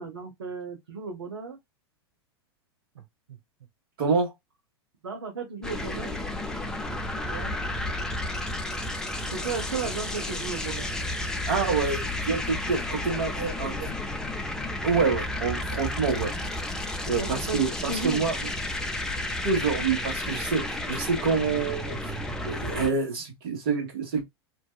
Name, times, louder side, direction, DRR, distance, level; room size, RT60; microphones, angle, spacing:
voice 1, 0.0-1.6 2.9-3.0 3.3-3.4 5.0-6.2 7.2-7.6 9.3-10.9 17.2-17.6 17.9-18.3 22.9-23.0, right 5 dB, 75° right, 0.6 m, -35 dB
voice 2, 4.0-4.3 11.5-13.9 14.8-16.3 17.0-18.4 19.4-22.1 22.4-24.2, right 5 dB, 60° right, 1.3 m, -27 dB
sound 1, 5.6-22.9, left 1 dB, 5° left, 0.5 m, -32 dB
2.6 x 2.3 x 2.3 m
figure-of-eight pair, 90°, 14 cm